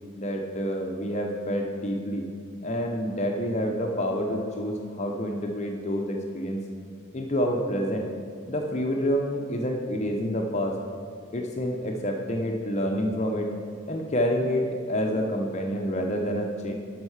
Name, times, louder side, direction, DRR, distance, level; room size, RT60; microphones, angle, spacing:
voice 1, 0.2-2.3 2.6-6.6 7.1-8.1 8.5-10.8 11.3-13.5 13.9-16.7, equal, 30° left, 2 dB, 0.6 m, -28 dB
10.0 x 6.3 x 4.8 m, 2.1 s
head